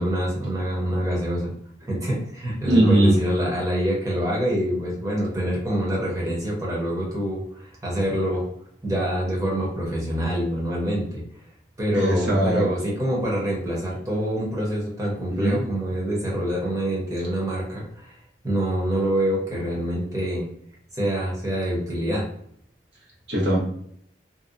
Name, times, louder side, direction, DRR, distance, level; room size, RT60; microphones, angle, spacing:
voice 1, 0.0-1.5 1.8-8.4 8.8-11.2 11.8-18.1 18.4-20.4 20.9-22.2, equal, 20° right, -4 dB, 0.8 m, -26 dB
voice 2, 2.7-3.1 11.9-12.7 15.3-15.7 23.3-23.6, right 1 dB, 70° right, -5 dB, 1.0 m, -20 dB
2.7 x 2.1 x 2.5 m, 0.65 s
head